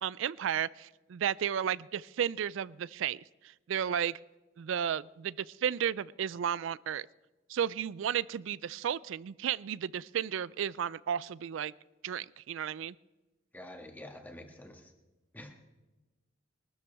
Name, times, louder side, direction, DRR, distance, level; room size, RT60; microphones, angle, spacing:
voice 1, 0.0-3.2 3.7-4.2 4.6-7.1 7.5-11.7 12.0-12.9, right 9 dB, 70° right, 21 dB, 0.3 m, -33 dB
voice 2, 13.5-14.9 15.3-15.5, left 1 dB, 10° left, 2 dB, 1.7 m, -47 dB
22.5 x 13.0 x 3.5 m, 1.1 s
head